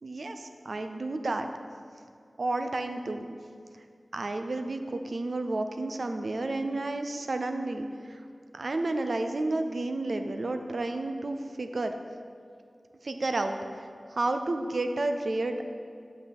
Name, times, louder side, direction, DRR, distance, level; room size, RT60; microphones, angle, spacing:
voice 1, 0.0-1.5 2.4-3.3 4.1-8.2 8.5-11.9 13.0-15.6, right 2 dB, 70° right, 6 dB, 0.5 m, -31 dB
7.6 x 5.4 x 4.4 m, 2.3 s
wide cardioid pair, 50°, 0 cm